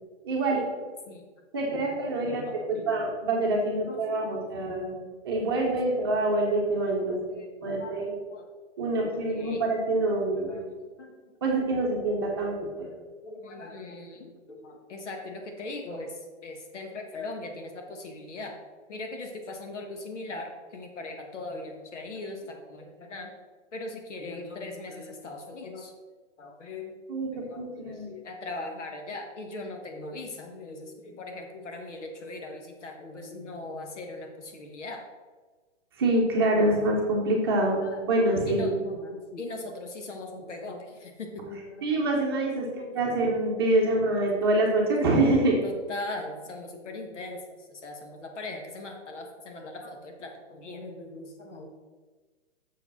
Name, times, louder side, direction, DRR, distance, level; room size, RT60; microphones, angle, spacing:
voice 1, 0.2-0.6 1.5-4.9 5.2-7.2 7.6-8.0 8.8-10.6 11.4-12.6 27.1-27.3 27.6-28.1 36.0-38.7 41.8-42.7 42.9-45.6, right 2 dB, 20° right, -2 dB, 0.9 m, -25 dB
voice 2, 1.6-2.9 3.8-4.5 5.5-6.1 7.1-8.5 8.8-9.7 10.1-11.6 12.7-18.6 18.9-23.3 23.7-25.9 26.4-27.0 27.3-35.0 37.8-38.0 38.5-42.1 42.6-43.0 44.4-44.5 44.8-44.9 45.6-51.7, left 2 dB, 75° left, 3 dB, 1.5 m, -40 dB
6.5 x 5.1 x 6.0 m, 1.4 s
hypercardioid pair, 175°, 36 cm